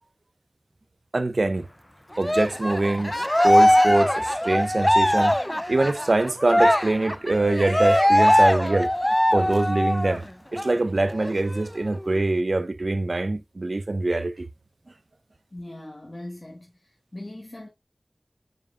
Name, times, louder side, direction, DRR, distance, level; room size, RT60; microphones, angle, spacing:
voice 1, 1.1-1.7 2.2-3.1 3.4-5.3 5.7-8.9 9.3-10.2 10.5-14.5, right 2 dB, 75° right, 0.7 m, -24 dB
Cheering, 2.2-10.2 10.6-10.7 11.1-12.1, left 1 dB, 15° left, 0.5 m, -21 dB
voice 2, 15.5-16.7 17.1-17.7, left 1 dB, 50° left, 1.9 m, -39 dB
9.5 x 5.4 x 2.5 m
wide cardioid pair, 45°, 0 cm